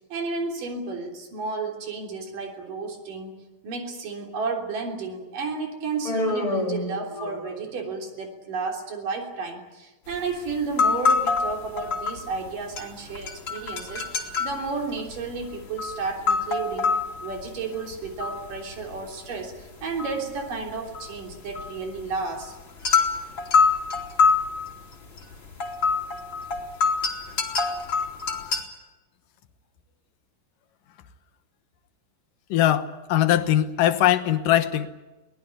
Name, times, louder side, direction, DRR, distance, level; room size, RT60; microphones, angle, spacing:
voice 1, 0.1-3.3 3.6-22.6, right 4 dB, 70° right, 3 dB, 5.0 m, -32 dB
Human voice, 6.0-7.8, left 2 dB, 10° left, 2.3 m, -29 dB
sound 1, 10.1-10.2 10.5-12.5 12.7-19.1 19.3-28.6, left 5 dB, 35° left, 3.4 m, -25 dB
voice 2, 32.5-34.9, left 12 dB, 75° left, 10 dB, 2.7 m, -21 dB
22.5 x 19.0 x 9.7 m, 1.1 s
omnidirectional pair, 3.9 m